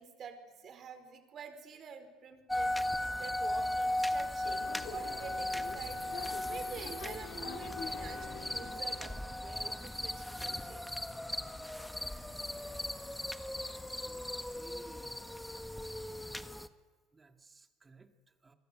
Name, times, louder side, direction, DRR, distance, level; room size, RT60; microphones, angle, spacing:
voice 1, 0.0-2.8 3.2-10.9, right 6 dB, 45° right, 8 dB, 4.7 m, -48 dB
sound 1, 2.5-16.7, left 1 dB, 5° left, 1.4 m, -37 dB
sound 2, 4.4-9.2, left 10 dB, 65° left, 2.3 m, -47 dB
voice 2, 14.0-15.3 15.9-16.1 17.1-18.5, right 3 dB, 25° right, 6 dB, 2.6 m, -59 dB
30.0 x 20.5 x 8.0 m, 1.4 s
supercardioid pair, 85°, 0 cm